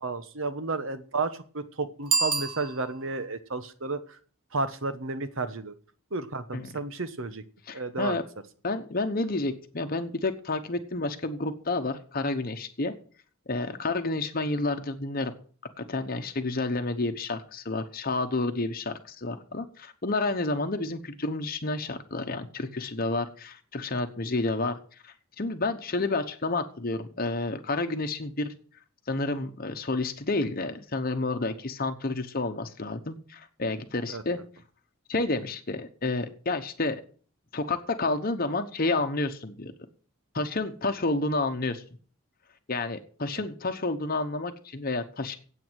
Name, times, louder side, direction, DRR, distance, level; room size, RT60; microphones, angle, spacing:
voice 1, 0.0-4.2 4.5-5.7 6.1-7.4 7.7-8.2 34.1-34.2, right 3 dB, 60° right, 12 dB, 1.2 m, -32 dB
Bicycle bell, 2.0-3.3, right 6 dB, 90° right, 1.6 m, -29 dB
voice 2, 7.7-8.2 8.6-12.9 13.5-15.3 15.8-28.5 29.1-34.4 35.1-37.0 37.5-39.7 40.3-41.8 42.7-45.4, left 2 dB, 45° left, 7 dB, 1.0 m, -30 dB
9.2 x 8.5 x 9.2 m, 0.44 s
head